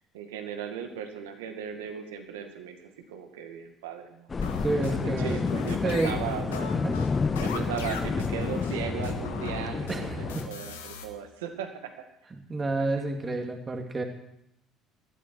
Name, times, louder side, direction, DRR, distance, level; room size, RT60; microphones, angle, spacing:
voice 1, 0.1-6.7 7.4-11.7 12.8-12.9, right 8 dB, 80° right, 5 dB, 2.0 m, -37 dB
sound 1, 4.3-10.5, left 4 dB, 30° left, 0.5 m, -30 dB
sound 2, 4.4-11.0, left 3 dB, 85° left, 1.6 m, -39 dB
voice 2, 4.6-5.4 5.8-6.1 6.7-6.9 9.9-10.5 12.5-14.0, right 2 dB, 30° right, 3 dB, 2.4 m, -30 dB
19.5 x 13.0 x 4.7 m, 0.79 s
hypercardioid pair, 60°, 0 cm